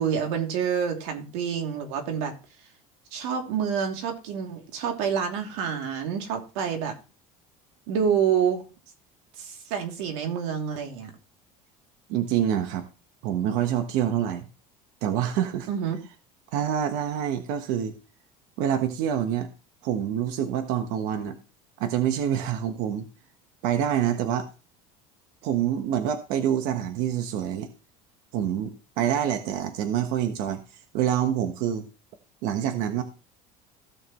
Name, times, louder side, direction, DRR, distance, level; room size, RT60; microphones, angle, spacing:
voice 1, 0.0-2.3 3.1-6.9 7.9-8.6 9.4-11.1 15.7-16.0, right 7 dB, 80° right, 2.8 m, -27 dB
voice 2, 12.1-12.8 13.2-14.4 15.0-15.7 16.5-17.9 18.6-19.5 19.8-21.4 21.8-23.1 23.6-24.5 25.4-27.7 28.3-31.8 32.4-33.0, right 10 dB, 65° right, 1.3 m, -26 dB
16.0 x 6.7 x 3.1 m
cardioid pair, 165°, 15 cm